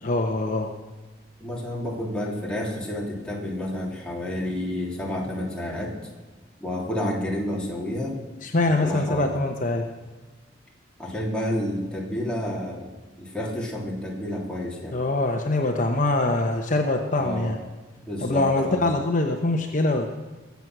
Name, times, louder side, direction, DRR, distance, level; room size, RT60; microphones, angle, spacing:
voice 1, 0.0-0.7 8.4-9.9 14.9-17.6 18.2-20.1, left 2 dB, 45° left, 4 dB, 1.0 m, -23 dB
voice 2, 1.4-6.0 6.6-8.2 8.6-9.3 11.0-12.9 13.2-15.0 17.2-17.5 18.1-18.9, left 1 dB, 5° left, -3 dB, 2.8 m, -30 dB
22.0 x 8.3 x 6.1 m, 1.3 s
head